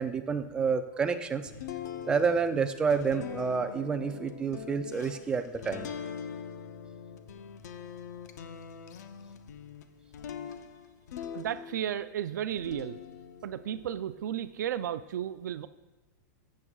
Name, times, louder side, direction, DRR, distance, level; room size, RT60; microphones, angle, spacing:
voice 1, 0.0-1.5 2.1-5.9, right 5 dB, 10° right, 8 dB, 0.3 m, -29 dB
sound 1, 1.5-12.1 12.5-14.8, left 7 dB, 65° left, 0.7 m, -43 dB
voice 2, 11.3-13.0 13.4-15.7, right 10 dB, 75° right, 13 dB, 0.4 m, -34 dB
14.5 x 7.4 x 2.3 m, 1.1 s
supercardioid pair, 165°, 10 cm